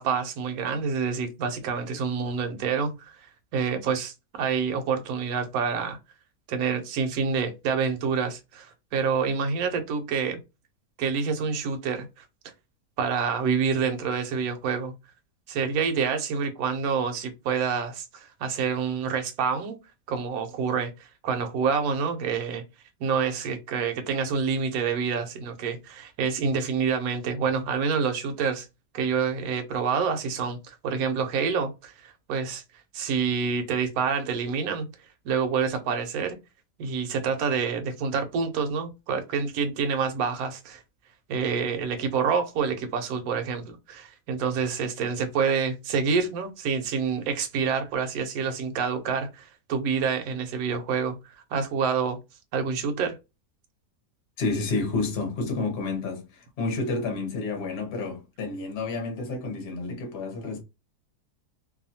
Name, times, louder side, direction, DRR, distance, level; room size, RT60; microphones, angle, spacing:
voice 1, 0.0-6.0 6.5-10.4 11.0-12.2 13.0-14.9 15.5-19.8 20.1-22.6 23.0-28.7 28.9-32.6 32.9-34.9 35.2-36.4 36.8-40.8 41.3-51.2 51.5-52.2 52.5-53.2, right 6 dB, 65° right, 1.0 m, -27 dB
voice 2, 54.4-60.6, left 3 dB, 50° left, 0.9 m, -30 dB
2.7 x 2.2 x 2.7 m
omnidirectional pair, 1.8 m